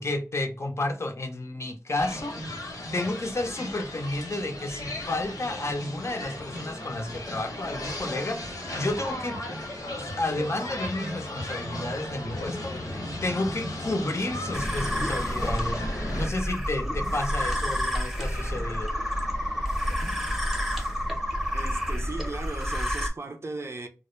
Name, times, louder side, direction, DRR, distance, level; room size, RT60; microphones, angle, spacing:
voice 1, 0.0-2.4 2.9-9.4 10.0-12.8 13.2-15.8 16.1-18.9, left 2 dB, 50° left, 0.5 m, -31 dB
sound 1, 2.0-16.3, left 1 dB, 80° left, 0.7 m, -36 dB
sound 2, 5.5-22.5, right 1 dB, 90° right, 0.7 m, -47 dB
sound 3, 14.5-23.1, equal, 5° right, 0.7 m, -29 dB
voice 2, 21.5-23.9, right 3 dB, 50° right, 0.4 m, -37 dB
2.2 x 2.0 x 3.0 m
wide cardioid pair, 55°, 6 cm